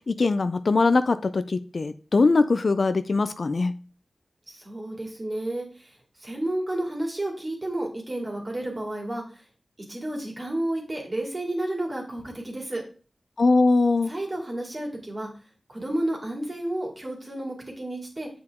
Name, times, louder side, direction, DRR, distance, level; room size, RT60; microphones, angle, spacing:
voice 1, 0.1-3.7 13.4-14.1, left 3 dB, 70° left, 12 dB, 0.4 m, -21 dB
voice 2, 4.5-5.9 6.2-9.2 9.9-12.8 14.1-15.3 15.7-18.3, right 1 dB, 45° right, 0 dB, 2.4 m, -31 dB
7.2 x 4.8 x 3.5 m, 0.38 s
cardioid pair, 45°, 0 cm